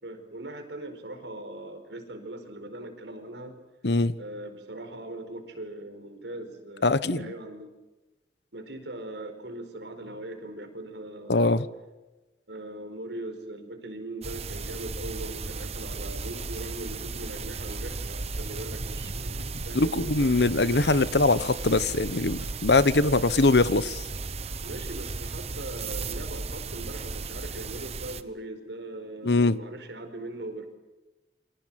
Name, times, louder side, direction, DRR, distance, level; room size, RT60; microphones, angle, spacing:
voice 1, 0.0-3.6 4.2-7.7 8.5-11.6 12.5-20.6 24.6-30.7, right 1 dB, 80° right, 7 dB, 4.7 m, -40 dB
voice 2, 3.8-4.1 6.8-7.3 11.3-11.7 19.7-24.0 29.2-29.6, left 2 dB, 70° left, 15 dB, 1.1 m, -22 dB
sound 1, 14.2-28.2, right 3 dB, 35° right, 1.1 m, -35 dB
28.5 x 25.0 x 7.6 m, 1.1 s
head